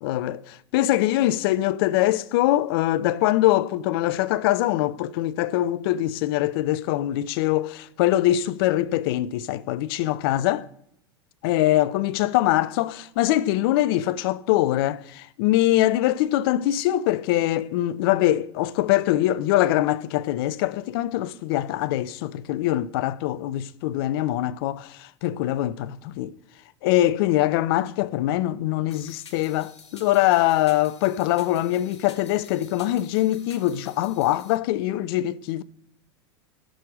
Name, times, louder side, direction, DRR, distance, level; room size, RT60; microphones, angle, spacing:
voice 1, 0.0-10.7 11.4-26.4 26.8-35.6, left 14 dB, 60° left, 0.5 m, -23 dB
sound 1, 28.9-34.6, left 5 dB, 80° left, 1.2 m, -49 dB
14.0 x 6.3 x 4.8 m
hypercardioid pair, 85°, 14 cm